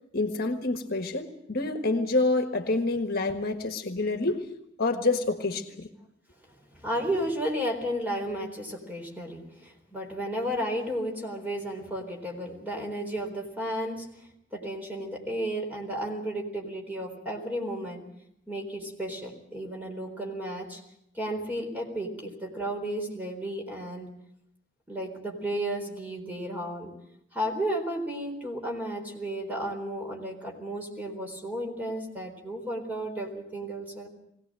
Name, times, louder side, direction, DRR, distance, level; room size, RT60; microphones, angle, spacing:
voice 1, 0.1-4.5 4.8-5.9, left 2 dB, 50° left, 5 dB, 1.5 m, -27 dB
voice 2, 6.7-14.1 14.5-18.0 18.5-20.8 21.1-24.1 24.9-26.9 27.3-34.1, right 1 dB, 10° right, 1 dB, 4.1 m, -33 dB
22.0 x 18.0 x 7.6 m, 0.76 s
head